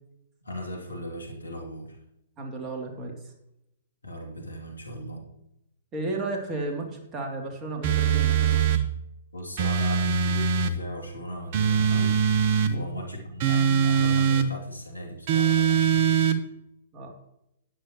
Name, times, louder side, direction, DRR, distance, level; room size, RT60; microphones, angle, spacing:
voice 1, 0.4-2.0 4.0-5.3 9.3-12.2 12.7-16.2, equal, 90° left, 1 dB, 2.6 m, -37 dB
voice 2, 2.4-3.2 5.9-8.8 12.6-12.9 16.9-17.1, right 2 dB, 25° right, 1 dB, 2.7 m, -33 dB
sound 1, 7.8-8.8 9.6-10.8 11.5-12.7 13.4-14.5 15.3-16.4, right 7 dB, 45° right, 1.0 m, -22 dB
13.0 x 9.9 x 3.0 m, 0.83 s
figure-of-eight pair, 120°, 0 cm